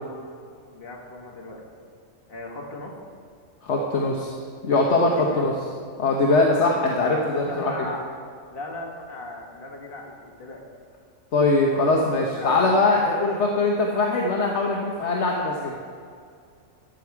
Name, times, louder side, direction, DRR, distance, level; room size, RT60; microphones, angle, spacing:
voice 1, 0.7-1.6 2.3-2.9 5.1-5.5 7.4-8.0 8.5-10.6 11.7-11.9 12.3-12.7, left 2 dB, 45° left, -1 dB, 1.6 m, -38 dB
voice 2, 3.6-4.4 4.6-5.5 6.0-7.7 11.3-15.9, left 2 dB, 65° left, -1 dB, 1.2 m, -22 dB
12.5 x 7.2 x 4.7 m, 2.2 s
omnidirectional pair, 1.3 m